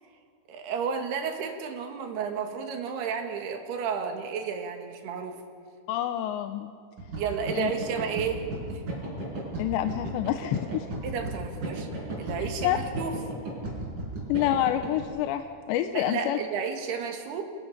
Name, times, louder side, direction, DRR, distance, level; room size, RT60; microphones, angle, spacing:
voice 1, 0.5-5.4 7.2-8.8 11.0-11.9 12.2-13.1 16.0-17.4, right 6 dB, 70° right, 4 dB, 3.6 m, -32 dB
voice 2, 5.9-6.7 7.6-7.7 9.6-10.9 12.6-12.8 14.3-16.4, left 12 dB, 90° left, 8 dB, 2.9 m, -27 dB
sound 1, 7.0-15.0, right 2 dB, 50° right, 6.6 m, -34 dB
28.5 x 18.0 x 5.8 m, 2.3 s
omnidirectional pair, 5.0 m